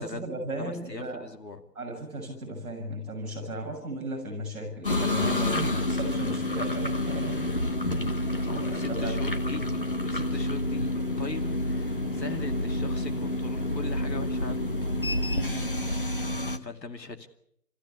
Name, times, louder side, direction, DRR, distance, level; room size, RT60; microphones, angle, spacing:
voice 1, 0.0-1.3 1.7-7.4 8.0-9.2 15.3-15.7, right 1 dB, ahead, -12 dB, 4.9 m, -36 dB
voice 2, 0.6-1.6 8.4-9.6 10.0-14.8 16.3-17.3, left 3 dB, 85° left, 6 dB, 2.6 m, -40 dB
sound 1, 4.8-16.6, left 1 dB, 35° left, 1.1 m, -28 dB
29.0 x 15.0 x 8.5 m, 0.75 s
figure-of-eight pair, 175°, 49 cm